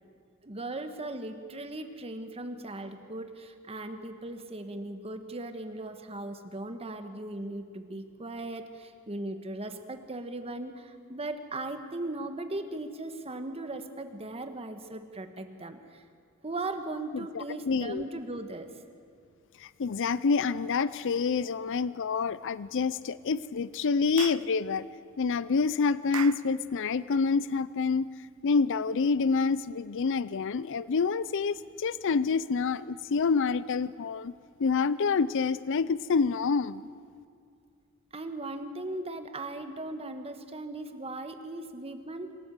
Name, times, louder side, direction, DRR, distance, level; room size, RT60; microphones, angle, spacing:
voice 1, 0.4-16.1 16.4-18.7 38.1-42.3, right 2 dB, 30° right, 8 dB, 1.3 m, -38 dB
voice 2, 17.1-18.0 19.6-24.9 25.2-28.1 28.4-34.3 34.6-36.9, left 5 dB, 60° left, 17 dB, 0.5 m, -27 dB
Clapping / Chirp tweet, 24.2-24.5 26.1-26.5, right 10 dB, 80° right, 0.7 m, -37 dB
26.0 x 13.5 x 8.1 m, 2.3 s
head